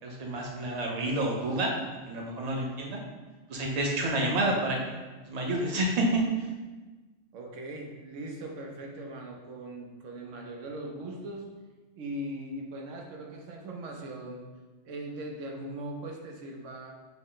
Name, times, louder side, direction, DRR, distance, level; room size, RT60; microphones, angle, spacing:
voice 1, 0.0-1.7 2.1-3.0 3.5-4.8 5.2-6.5, right 1 dB, 40° right, -1 dB, 0.7 m, -29 dB
voice 2, 7.3-11.5 11.9-14.4 14.8-16.9, right 1 dB, 80° right, 1 dB, 1.0 m, -40 dB
6.0 x 2.1 x 3.8 m, 1.3 s
omnidirectional pair, 1.3 m